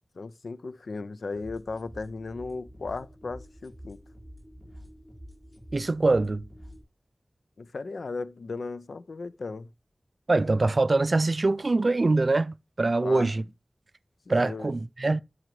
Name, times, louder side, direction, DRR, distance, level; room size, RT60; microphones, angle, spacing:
voice 1, 0.2-4.0 7.6-9.7 13.0-13.3 14.4-14.7, left 3 dB, 85° left, 0.5 m, -36 dB
sound 1, 1.3-6.8, equal, 5° left, 4.7 m, -48 dB
voice 2, 5.7-6.4 10.3-13.4 14.3-15.2, right 3 dB, 50° right, 0.4 m, -24 dB
12.5 x 6.3 x 3.2 m
wide cardioid pair, 85°, 0 cm